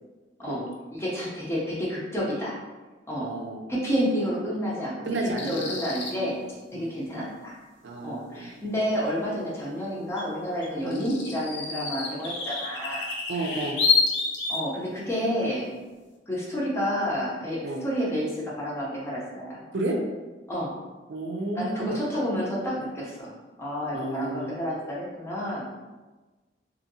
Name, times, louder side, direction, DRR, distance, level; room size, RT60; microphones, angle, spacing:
voice 1, 0.9-2.6 3.1-3.3 3.7-6.4 6.7-7.6 8.0-13.1 14.5-15.7 16.3-19.6 20.5-20.7 21.5-23.3 23.6-25.6, equal, 15° left, -5 dB, 0.6 m, -30 dB
voice 2, 3.2-3.7 5.1-5.6 6.7-6.8 7.8-8.5 10.8-11.1 13.3-13.8 17.6-17.8 19.7-20.0 21.1-22.0 23.9-24.5, right 2 dB, 75° right, 1 dB, 0.5 m, -31 dB
sound 1, 5.4-6.1 10.2-10.3 10.6-14.7, left 5 dB, 80° left, 0.6 m, -28 dB
2.7 x 2.7 x 2.7 m, 1.2 s
head